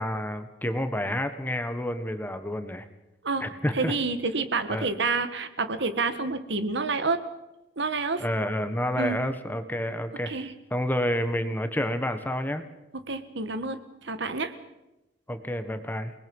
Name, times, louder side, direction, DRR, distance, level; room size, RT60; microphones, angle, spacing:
voice 1, 0.0-2.8 3.4-3.9 4.7-4.9 8.2-10.3 10.7-12.6 15.3-16.1, equal, 10° left, 9 dB, 1.4 m, -29 dB
voice 2, 3.7-7.2 7.8-8.2 9.0-9.2 10.3-10.5 13.1-14.5, right 3 dB, 65° right, 10 dB, 1.6 m, -28 dB
28.5 x 20.0 x 5.5 m, 0.94 s
head